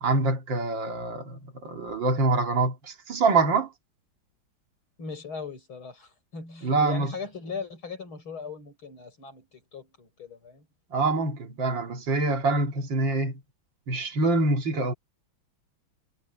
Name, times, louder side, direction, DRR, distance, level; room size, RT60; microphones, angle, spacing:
voice 1, 0.0-3.7 6.6-7.1 10.9-13.3 13.9-14.9, right 3 dB, 65° right, 2.7 m, -25 dB
voice 2, 5.0-10.7, left 5 dB, 85° left, 7.2 m, -39 dB
omnidirectional pair, 2.2 m